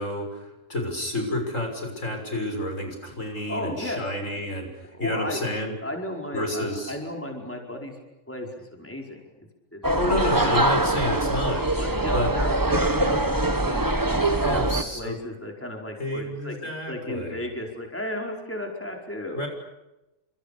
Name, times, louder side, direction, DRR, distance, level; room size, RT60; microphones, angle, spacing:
voice 1, 0.0-4.7 5.0-5.7 6.3-6.9 10.0-11.6 12.1-12.3 14.4-15.2 16.0-17.4 19.3-19.5, left 1 dB, 70° left, 4 dB, 6.9 m, -30 dB
voice 2, 3.3-4.1 4.3-4.4 4.9-5.4 5.8-8.0 8.3-9.2 9.7-11.0 11.3-16.5 16.9-19.5, left 1 dB, 10° left, 1 dB, 5.0 m, -35 dB
sound 1, 9.8-14.8, right 2 dB, 15° right, 1.4 m, -23 dB
30.0 x 27.5 x 6.9 m, 0.97 s
omnidirectional pair, 1.4 m